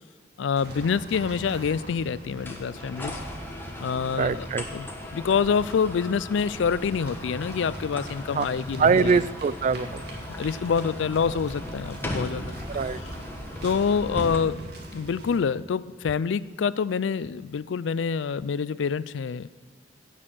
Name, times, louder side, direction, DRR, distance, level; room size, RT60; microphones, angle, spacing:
voice 1, 0.4-3.2 3.8-4.5 4.7-4.9 5.1-9.2 9.8-9.9 10.4-12.5 13.6-14.6 14.9-19.5, left 6 dB, 70° left, 18 dB, 0.4 m, -26 dB
sound 1, 0.6-15.4, right 1 dB, 60° right, 2.1 m, -43 dB
sound 2, 2.4-14.4, left 1 dB, 10° left, 1.5 m, -37 dB
voice 2, 4.2-4.6 8.3-8.5 8.8-10.2 12.7-13.0, right 5 dB, 40° right, 17 dB, 0.3 m, -23 dB
16.5 x 6.3 x 7.6 m, 1.5 s
head